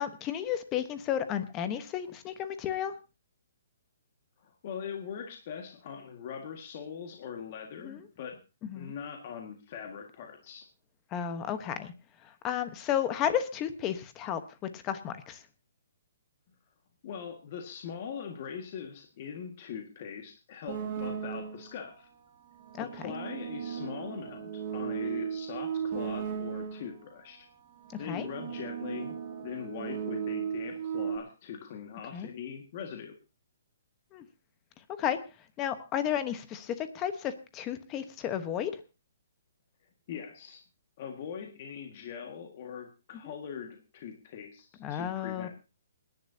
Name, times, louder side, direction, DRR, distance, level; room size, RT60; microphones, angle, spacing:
voice 1, 0.0-2.9 7.8-8.0 8.6-8.9 11.1-11.9 12.2-15.4 22.8-22.9 27.9-28.3 32.1-32.3 34.1-34.2 35.0-35.2 35.6-38.7 44.8-45.5, left 9 dB, 15° left, 10 dB, 1.1 m, -33 dB
voice 2, 4.4-8.4 8.7-10.7 17.0-22.1 22.8-27.5 28.0-33.2 40.1-40.6 41.0-45.5, left 7 dB, 35° left, 3 dB, 1.8 m, -41 dB
sound 1, 20.7-21.8 22.5-27.0 27.8-31.2, right 7 dB, 25° right, 2.5 m, -36 dB
27.5 x 10.5 x 2.8 m, 0.30 s
hypercardioid pair, 170°, 0 cm